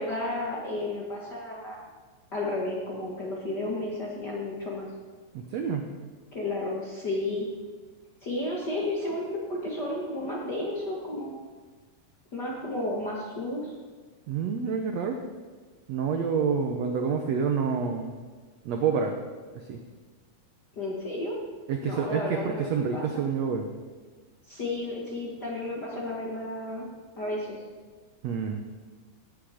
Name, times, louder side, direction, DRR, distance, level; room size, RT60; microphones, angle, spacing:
voice 1, 0.0-1.8 2.3-4.9 6.3-7.5 8.2-11.4 12.3-13.7 20.7-21.3 21.8-23.2 24.5-26.9 27.1-27.6, left 2 dB, 45° left, -3 dB, 1.4 m, -32 dB
voice 2, 5.3-5.9 14.3-15.2 15.9-18.1 18.6-19.2 19.5-19.8 21.7-23.7 28.2-28.6, right 6 dB, 85° right, 4 dB, 1.4 m, -28 dB
16.5 x 8.2 x 5.1 m, 1.4 s
omnidirectional pair, 4.2 m